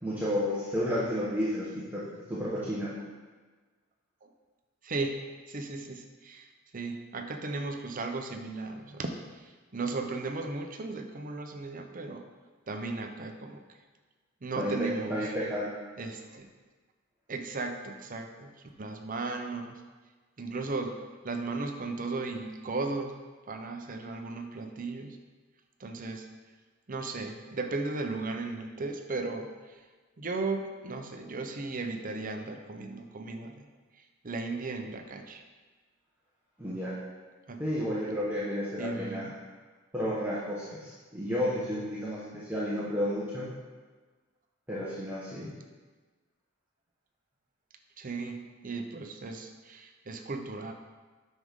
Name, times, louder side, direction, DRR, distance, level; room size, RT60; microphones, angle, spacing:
voice 1, 0.0-2.0 2.3-2.9 14.6-15.7 36.6-37.0 37.6-39.3 39.9-43.5 44.7-45.5, equal, 10° right, -10 dB, 1.3 m, -32 dB
voice 2, 4.8-5.2 5.5-12.2 12.7-13.8 14.4-15.3 16.0-16.5 17.3-18.5 18.8-19.8 20.4-23.1 23.5-25.2 25.8-26.3 26.9-29.9 30.2-33.7 33.9-35.4 37.5-37.6 38.8-39.3 48.0-50.7, right 3 dB, 40° right, 5 dB, 0.7 m, -36 dB
9.7 x 6.3 x 3.7 m, 1.4 s
head